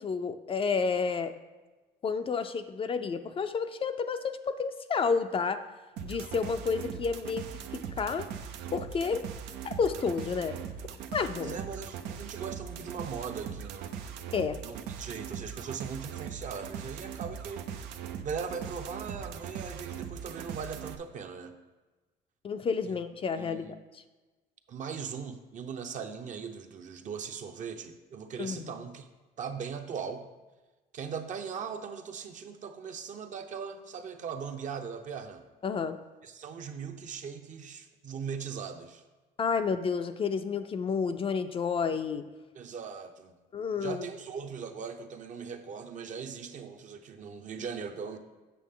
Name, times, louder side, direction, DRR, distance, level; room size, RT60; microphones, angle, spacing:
voice 1, 0.0-1.3 2.0-5.6 6.0-8.3 8.7-9.2 9.6-10.6 11.1-11.5 14.3-14.6 22.4-24.0 28.4-28.7 35.6-36.0 39.4-42.2 43.5-44.0, left 5 dB, 35° left, 9 dB, 0.4 m, -30 dB
sound 1, 6.0-21.0, right 8 dB, 90° right, 0.6 m, -40 dB
voice 2, 11.4-13.9 14.6-17.7 18.2-21.5 22.8-22.9 23.3-23.8 24.7-29.1 29.4-30.3 30.9-35.4 36.2-39.0 42.5-43.3 43.7-48.2, right 6 dB, 50° right, 5 dB, 0.7 m, -39 dB
8.4 x 6.5 x 3.7 m, 1.2 s
cardioid pair, 110°, 17 cm